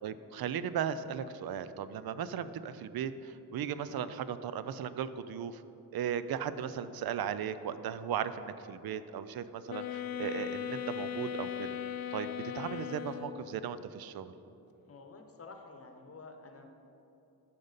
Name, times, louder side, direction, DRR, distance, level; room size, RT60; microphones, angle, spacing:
voice 1, 0.0-5.6 5.9-11.7 12.1-14.3, right 8 dB, 65° right, 13 dB, 0.5 m, -37 dB
sound 1, 9.7-13.6, left 10 dB, 60° left, 0.5 m, -38 dB
voice 2, 14.9-16.8, left 3 dB, 35° left, 4 dB, 0.9 m, -50 dB
14.0 x 5.3 x 4.0 m, 2.9 s
wide cardioid pair, 125°, 40 cm